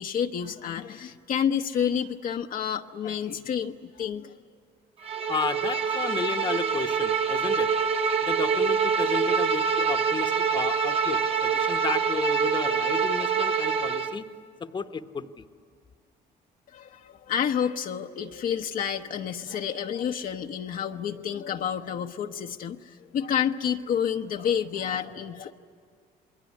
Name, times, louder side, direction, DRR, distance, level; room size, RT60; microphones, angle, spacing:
voice 1, 0.0-4.3 16.7-25.5, left 8 dB, 55° left, 4 dB, 0.9 m, -29 dB
Bowed string instrument, 5.0-14.2, right 6 dB, 35° right, 1.2 m, -25 dB
voice 2, 5.3-7.7 8.2-14.3 14.6-15.5, left 5 dB, 25° left, 10 dB, 1.0 m, -33 dB
28.0 x 21.5 x 9.8 m, 2.1 s
cardioid pair, 110°, 17 cm